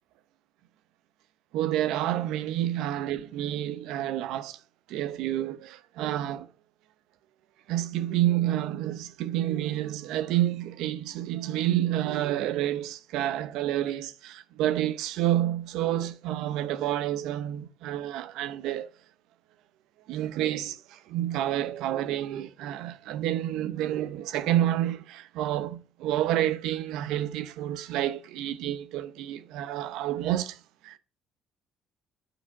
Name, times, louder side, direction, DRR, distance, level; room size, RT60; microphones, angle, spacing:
voice 1, 1.5-4.6 4.9-6.5 7.7-18.9 20.1-31.0, right 12 dB, 80° right, 0.8 m, -29 dB
8.8 x 4.9 x 4.8 m
cardioid pair, 145°, 0 cm